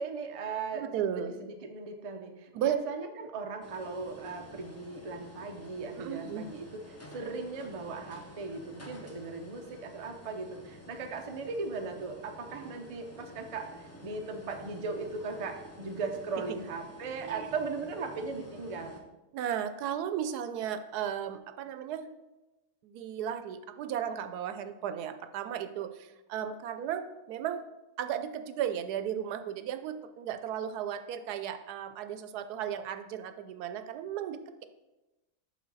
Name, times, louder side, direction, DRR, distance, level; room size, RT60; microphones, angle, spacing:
voice 1, 0.0-0.9 1.1-6.8 7.1-19.0, right 4 dB, 45° right, 4 dB, 0.4 m, -38 dB
voice 2, 0.7-1.3 2.5-2.8 6.0-6.5 16.5-16.6 17.2-17.5 19.3-22.1 22.8-27.6 28.0-34.7, right 9 dB, 85° right, 9 dB, 1.1 m, -35 dB
sound 1, 3.6-19.0, equal, 15° left, 0.7 m, -50 dB
6.3 x 6.1 x 4.0 m, 1.0 s
omnidirectional pair, 1.6 m